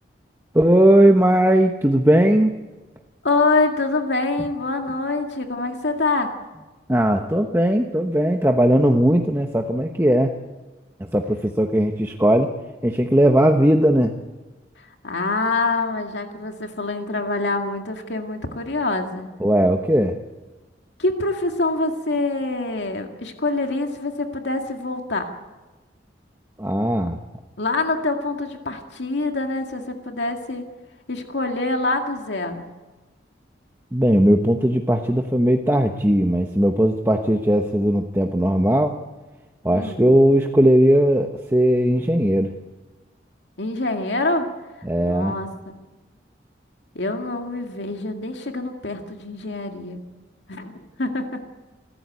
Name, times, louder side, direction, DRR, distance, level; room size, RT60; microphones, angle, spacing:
voice 1, 0.5-2.5 6.9-10.3 11.0-12.5 12.8-14.2 19.4-20.2 26.6-27.2 33.9-39.0 39.6-42.6 44.8-45.4, right 1 dB, 15° right, 3 dB, 1.0 m, -18 dB
voice 2, 3.2-6.3 15.0-19.3 21.0-25.3 27.6-30.7 31.1-32.7 39.7-40.0 43.6-44.5 45.0-45.5 46.9-50.0 50.5-51.3, left 3 dB, 75° left, 3 dB, 2.1 m, -25 dB
28.0 x 14.5 x 9.4 m, 1.2 s
head